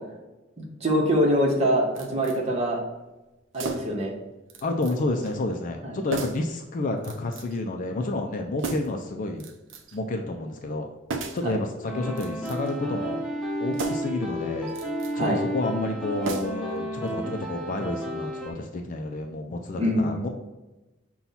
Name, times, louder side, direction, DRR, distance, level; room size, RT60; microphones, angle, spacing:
voice 1, 0.8-2.8 3.5-4.1 5.8-6.0 11.4-11.6 15.1-15.4 19.7-20.3, equal, 35° right, -1 dB, 1.0 m, -24 dB
sound 1, 2.0-2.4 3.5-4.1 4.5-5.0 5.2-5.4 6.1-6.5 7.0-7.6 8.6-9.0 9.4-10.0 11.1-11.5 12.1-12.8 13.7-14.2 14.7-15.1 16.2-16.8 17.1-17.2, right 3 dB, 70° right, 0.5 m, -35 dB
voice 2, 4.6-9.5 9.9-10.9 11.3-13.2 13.6-14.7 15.1-20.3, left 2 dB, 45° left, 4 dB, 0.4 m, -30 dB
sound 2, 11.9-18.5, equal, ahead, 1.0 m, -32 dB
5.7 x 2.3 x 4.1 m, 1.0 s
head